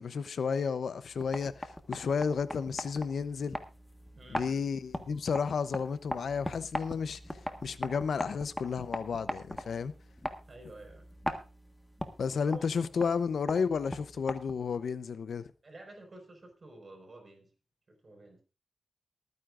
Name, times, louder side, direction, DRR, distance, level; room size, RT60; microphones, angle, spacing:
voice 1, 0.0-3.6 4.3-7.2 7.6-9.9 12.2-15.5, left 6 dB, 70° left, 0.7 m, -32 dB
sound 1, 1.0-14.8, left 1 dB, 10° left, 1.5 m, -41 dB
voice 2, 4.1-4.6 10.5-11.0 12.4-12.7 15.6-17.5 17.9-18.4, right 2 dB, 40° right, 5.2 m, -50 dB
23.5 x 9.6 x 2.5 m
wide cardioid pair, 95°, 0 cm